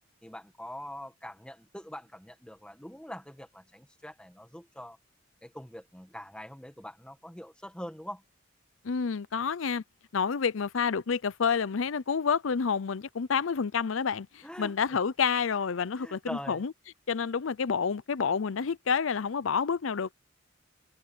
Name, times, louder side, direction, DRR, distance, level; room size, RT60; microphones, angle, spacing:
voice 1, 0.2-5.0 5.4-8.2 14.4-14.7 15.9-16.6, equal, 5° left, 1.8 m, -43 dB
voice 2, 8.8-9.8 10.1-16.7 17.1-20.1, left 6 dB, 80° left, 0.6 m, -29 dB
head